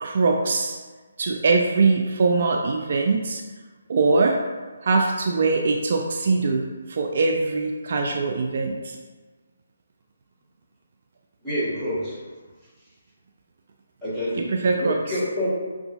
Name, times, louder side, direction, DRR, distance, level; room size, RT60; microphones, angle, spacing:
voice 1, 0.0-0.8 1.2-3.4 3.9-4.4 4.8-9.0 14.4-15.0, right 3 dB, 50° right, 2 dB, 0.3 m, -22 dB
voice 2, 11.4-12.2 14.0-15.5, equal, ahead, -12 dB, 1.2 m, -27 dB
5.6 x 2.4 x 2.4 m, 1.4 s
figure-of-eight pair, 145°, 0 cm